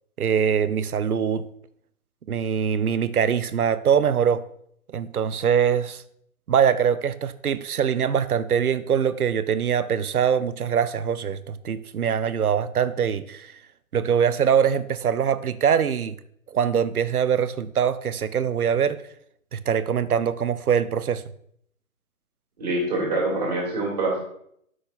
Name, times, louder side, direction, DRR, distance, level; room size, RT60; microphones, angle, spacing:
voice 1, 0.2-1.4 2.3-4.4 4.9-6.0 6.5-13.5 13.9-16.2 16.5-19.0 19.5-21.2, right 8 dB, 80° right, 14 dB, 0.7 m, -23 dB
voice 2, 22.6-24.2, right 2 dB, 30° right, -3 dB, 2.4 m, -25 dB
8.0 x 6.2 x 4.1 m, 0.68 s
hypercardioid pair, 170°, 43 cm